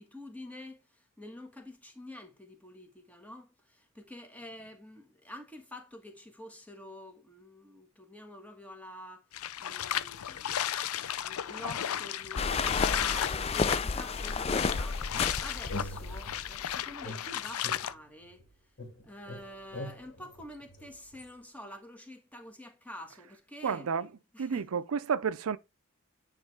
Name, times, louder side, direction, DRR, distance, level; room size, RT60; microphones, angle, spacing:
voice 1, 0.0-9.2 9.6-15.0 15.4-18.4 19.0-23.9 24.3-24.6, left 1 dB, 5° left, 1.5 m, -48 dB
sound 1, 9.3-17.9, left 10 dB, 85° left, 0.5 m, -35 dB
sound 2, 12.4-16.7, left 4 dB, 30° left, 0.4 m, -31 dB
sound 3, 15.1-16.6 17.0-18.5 18.8-21.3, left 1 dB, 55° left, 2.2 m, -44 dB
voice 2, 23.6-24.1 24.4-25.6, right 6 dB, 80° right, 0.5 m, -31 dB
9.3 x 3.2 x 4.7 m
head